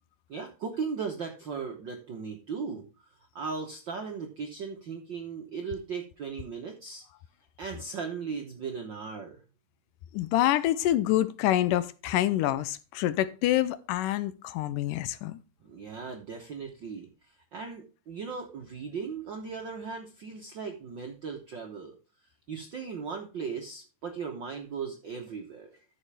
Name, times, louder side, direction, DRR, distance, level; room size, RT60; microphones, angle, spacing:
voice 1, 0.3-7.0 7.6-9.4 15.6-25.8, right 5 dB, 65° right, 1.1 m, -38 dB
voice 2, 10.1-15.4, left 13 dB, 85° left, 2.2 m, -26 dB
13.0 x 6.4 x 3.4 m
omnidirectional pair, 3.8 m